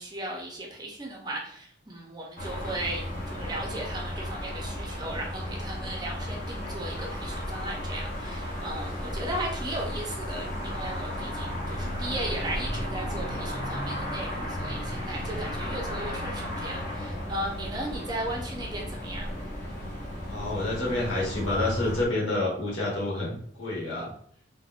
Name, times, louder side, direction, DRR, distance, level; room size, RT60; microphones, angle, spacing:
voice 1, 0.0-19.3, right 1 dB, 20° right, 0 dB, 0.5 m, -36 dB
sound 1, 2.4-22.1, equal, 45° left, 0.6 m, -34 dB
voice 2, 20.3-24.1, left 2 dB, 85° left, -4 dB, 1.1 m, -28 dB
3.4 x 2.1 x 2.4 m, 0.62 s
head